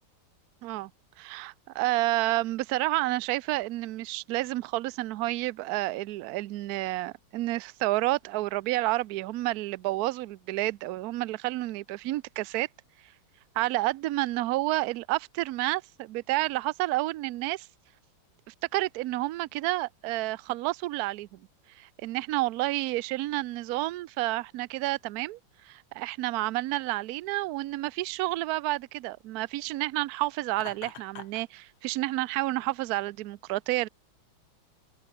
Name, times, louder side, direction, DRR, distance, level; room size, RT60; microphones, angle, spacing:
voice 1, 1.2-12.7 13.6-17.7 18.5-21.4 21.8-25.4 25.6-33.9, right 18 dB, 75° right, 0.9 m, -30 dB
Laughter, 30.5-31.5, left 10 dB, 85° left, 2.1 m, -44 dB
omnidirectional pair, 2.2 m